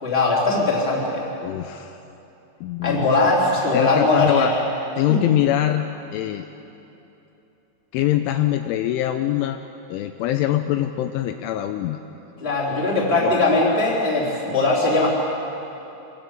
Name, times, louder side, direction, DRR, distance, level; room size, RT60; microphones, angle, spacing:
voice 1, 0.0-1.2 2.8-4.6 5.1-5.2 12.4-15.1, left 2 dB, 15° left, -3 dB, 3.5 m, -20 dB
voice 2, 1.4-2.0 2.6-3.3 3.7-4.5 5.0-5.8 6.1-6.5 7.9-9.6 9.9-12.0 13.2-13.3, left 13 dB, 80° left, 7 dB, 3.0 m, -23 dB
26.0 x 20.5 x 8.4 m, 3.0 s
omnidirectional pair, 5.9 m